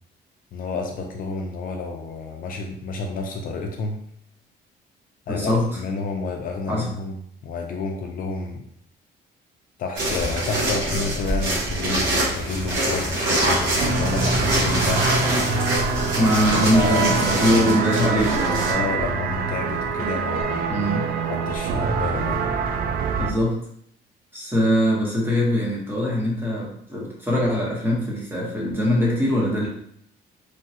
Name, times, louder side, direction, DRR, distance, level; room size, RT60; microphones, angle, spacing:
voice 1, 0.5-4.0 5.3-8.6 9.8-15.5 16.7-17.2 17.5-17.8 18.7-20.8 21.2-22.5, left 4 dB, 50° left, 2 dB, 0.4 m, -30 dB
voice 2, 5.3-5.6 6.7-6.9 16.2-18.6 20.7-21.1 23.2-23.6 24.3-29.7, equal, 10° right, -4 dB, 0.9 m, -22 dB
sound 1, 9.9-18.7, right 1 dB, 85° right, 1.0 m, -25 dB
sound 2, 13.8-23.3, right 4 dB, 55° right, 0.4 m, -25 dB
3.1 x 2.2 x 2.7 m, 0.69 s
cardioid pair, 135°, 18 cm